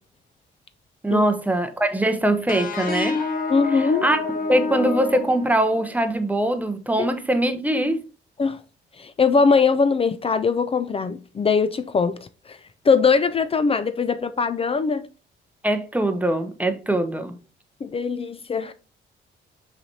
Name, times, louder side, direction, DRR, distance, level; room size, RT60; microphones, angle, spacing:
voice 1, 1.0-3.2 3.7-4.2 4.5-8.0 15.6-17.4, right 1 dB, 10° right, 0.7 m, -22 dB
sound 1, 2.5-6.0, left 4 dB, 45° left, 1.1 m, -28 dB
voice 2, 3.5-4.1 8.4-8.6 9.0-12.2 12.5-12.6 12.9-15.1 17.8-18.7, left 5 dB, 30° left, 0.4 m, -21 dB
6.0 x 3.3 x 2.7 m
cardioid pair, 90°, 20 cm